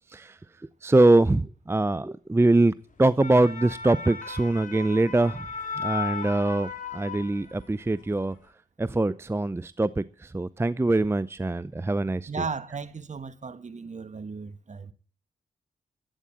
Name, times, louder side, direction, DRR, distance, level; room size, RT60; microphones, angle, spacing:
voice 1, 0.1-5.5 5.8-8.4 8.8-12.4, right 2 dB, 15° right, 0.6 m, -23 dB
sound 1, 3.0-7.7 8.1-8.3, left 5 dB, 50° left, 3.7 m, -36 dB
voice 2, 12.3-14.9, right 4 dB, 45° right, 1.3 m, -35 dB
12.5 x 9.1 x 7.4 m
supercardioid pair, 40°, 17 cm